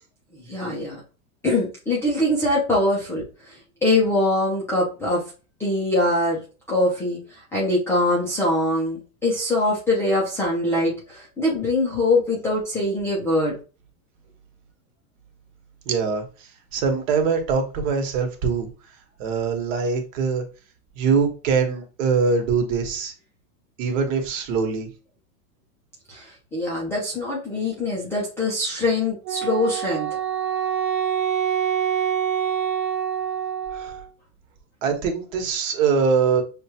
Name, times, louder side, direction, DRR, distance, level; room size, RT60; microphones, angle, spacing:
voice 1, 0.5-1.0 1.4-3.5 3.8-5.2 5.6-6.4 6.7-7.2 7.5-13.5 26.1-30.1, left 1 dB, 5° left, -6 dB, 0.4 m, -23 dB
voice 2, 15.9-16.2 16.7-18.7 19.2-20.4 21.0-23.1 23.8-24.9 33.7-33.9 34.8-36.4, right 5 dB, 60° right, 4 dB, 1.3 m, -23 dB
Wind instrument woodwind instrument, 29.2-34.1, right 8 dB, 45° right, 1.2 m, -25 dB
6.2 x 2.3 x 2.8 m, 0.34 s
supercardioid pair, 155°, 43 cm